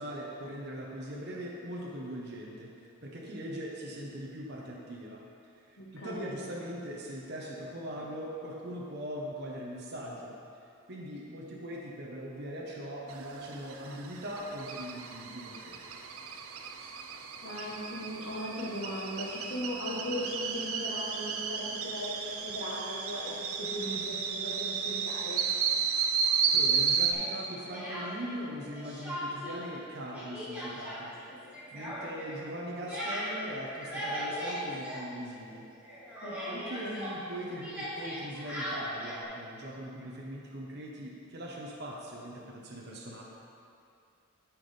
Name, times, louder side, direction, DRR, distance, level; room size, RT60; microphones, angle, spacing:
voice 1, 0.0-5.2 5.5-10.4 10.9-15.9 26.5-31.1 31.7-35.7 36.5-43.2, equal, 50° right, -3 dB, 1.0 m, -41 dB
voice 2, 5.8-6.3 17.4-25.5 36.2-36.9, equal, 65° left, -7 dB, 1.2 m, -38 dB
sound 1, 13.1-27.1, right 6 dB, 80° right, 0.6 m, -33 dB
Speech, 27.1-28.4 28.7-29.6 29.8-35.5 35.8-39.2, equal, 5° right, 1.7 m, -39 dB
12.0 x 6.1 x 3.4 m, 2.5 s
head